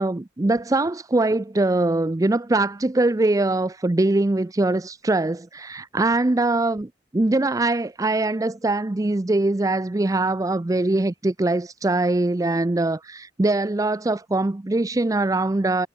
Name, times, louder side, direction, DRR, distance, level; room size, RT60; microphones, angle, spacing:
voice 1, 0.0-15.9, right 2 dB, 20° right, 0.4 m, -22 dB
head